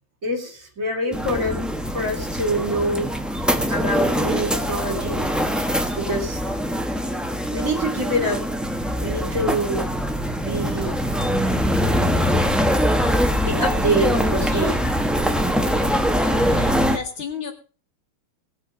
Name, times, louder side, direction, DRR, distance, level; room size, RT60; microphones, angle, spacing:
voice 1, 0.2-1.6 1.9-3.1 3.7-5.3 5.9-6.4 7.5-8.5 9.0-9.8 10.4-10.9 13.4-14.8, right 1 dB, 40° right, 4 dB, 3.8 m, -25 dB
sound 1, 1.1-17.0, equal, ahead, 0.4 m, -23 dB
voice 2, 16.2-17.5, left 6 dB, 70° left, 5 dB, 2.8 m, -34 dB
19.0 x 7.3 x 5.2 m, 0.37 s
omnidirectional pair, 2.3 m